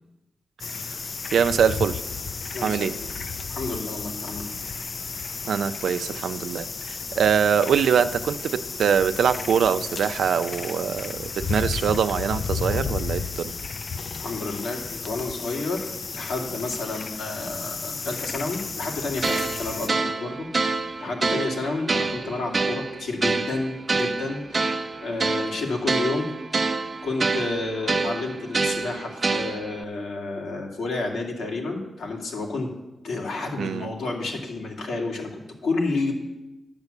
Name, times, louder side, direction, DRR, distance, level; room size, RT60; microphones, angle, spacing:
sound 1, 0.6-19.9, left 5 dB, 50° left, 0.3 m, -33 dB
voice 1, 1.3-2.0 2.6-2.9 5.5-13.5 33.6-33.9, right 7 dB, 85° right, 12 dB, 0.5 m, -23 dB
voice 2, 2.5-3.1 3.5-4.5 14.2-26.3 26.6-32.7 33.0-36.1, left 3 dB, 85° left, 0 dB, 2.3 m, -30 dB
sound 2, 19.2-29.8, right 3 dB, 40° right, 0.8 m, -27 dB
10.5 x 6.7 x 8.3 m, 1.0 s
cardioid pair, 95°, 0 cm